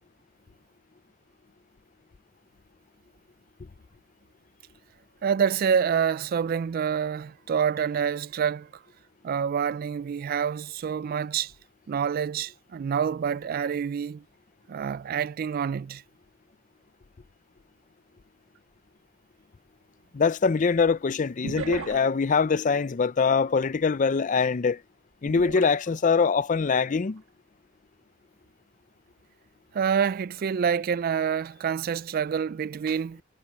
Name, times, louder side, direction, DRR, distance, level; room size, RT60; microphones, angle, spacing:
voice 1, 5.2-8.7 9.2-11.5 11.9-14.2 14.7-16.0 29.7-33.2, right 7 dB, 45° right, 0.3 m, -27 dB
sound 1, 18.6-18.7 21.4-22.3 25.3-26.4 26.9-27.2, right 4 dB, 80° right, 1.3 m, -37 dB
voice 2, 20.1-24.8 25.2-27.2, left 5 dB, 40° left, 0.4 m, -23 dB
head